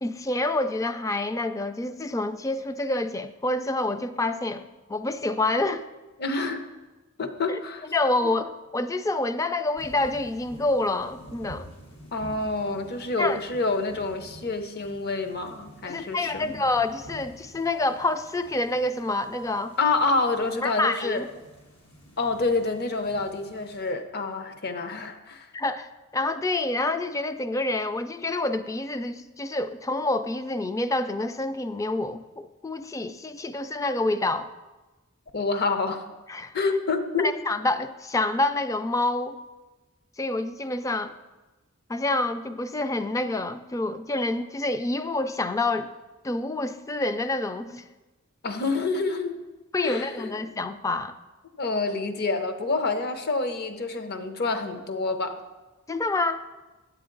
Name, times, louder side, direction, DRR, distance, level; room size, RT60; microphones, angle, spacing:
voice 1, 0.0-4.6 4.9-5.8 7.5-7.6 7.9-11.7 13.2-13.4 15.8-19.7 20.6-21.2 25.5-34.5 36.3-36.5 37.2-39.4 40.2-41.1 41.9-45.9 46.2-47.8 49.7-51.1 55.9-56.4, left 2 dB, 15° left, 10 dB, 0.3 m, -27 dB
voice 2, 6.2-6.7 7.2-7.9 12.1-16.6 19.8-21.2 22.2-25.5 35.3-36.1 36.5-37.3 48.4-49.4 49.8-50.3 51.6-55.4, left 3 dB, 50° left, 7 dB, 0.7 m, -27 dB
sound 1, 9.8-23.9, equal, 85° left, 1.5 m, -49 dB
8.5 x 7.8 x 3.8 m, 1.2 s
head